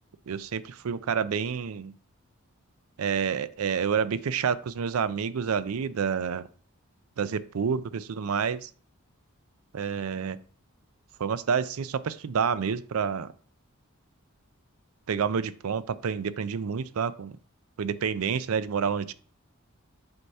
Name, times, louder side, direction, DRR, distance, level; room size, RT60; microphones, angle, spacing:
voice 1, 0.3-1.9 3.0-6.5 7.2-8.7 9.7-10.4 11.2-13.3 15.1-17.4 17.8-19.1, right 6 dB, 90° right, 15 dB, 0.5 m, -28 dB
7.8 x 2.8 x 5.4 m, 0.43 s
head